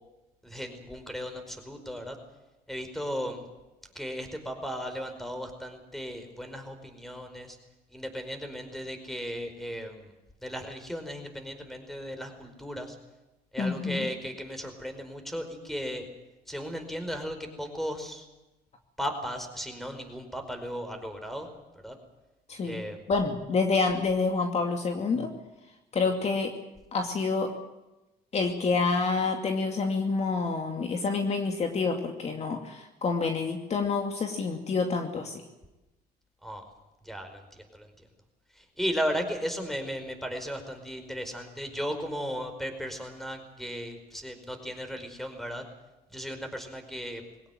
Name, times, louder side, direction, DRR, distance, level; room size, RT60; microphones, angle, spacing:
voice 1, 0.4-2.2 2.7-3.5 3.9-7.6 7.9-10.1 10.4-13.0 13.5-16.1 16.5-18.3 19.0-21.5 21.8-21.9 22.6-23.0 36.4-36.6 37.0-37.9 38.5-45.6 46.1-47.2, equal, ahead, 7 dB, 4.9 m, -36 dB
voice 2, 13.6-14.1 22.5-25.3 25.9-26.5 26.9-27.5 28.3-35.4, left 4 dB, 40° left, 4 dB, 2.6 m, -28 dB
22.0 x 18.0 x 9.3 m, 1.0 s
cardioid pair, 110°, 17 cm